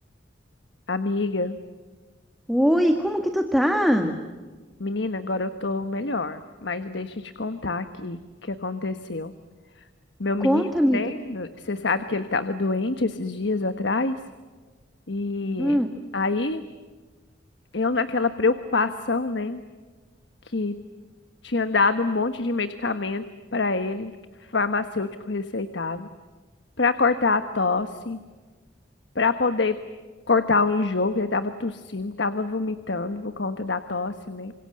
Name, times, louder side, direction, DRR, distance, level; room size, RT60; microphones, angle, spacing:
voice 1, 0.9-1.6 4.8-9.3 10.2-14.2 15.1-15.8 16.1-16.6 17.7-19.6 20.4-20.7 21.4-23.2 23.5-24.1 24.5-26.1 26.8-28.2 29.1-29.8 30.3-34.5, left 3 dB, 70° left, 10 dB, 1.3 m, -26 dB
voice 2, 2.5-4.2 10.4-11.0 15.6-15.9, equal, ahead, 5 dB, 1.8 m, -21 dB
28.0 x 26.0 x 7.9 m, 1.4 s
head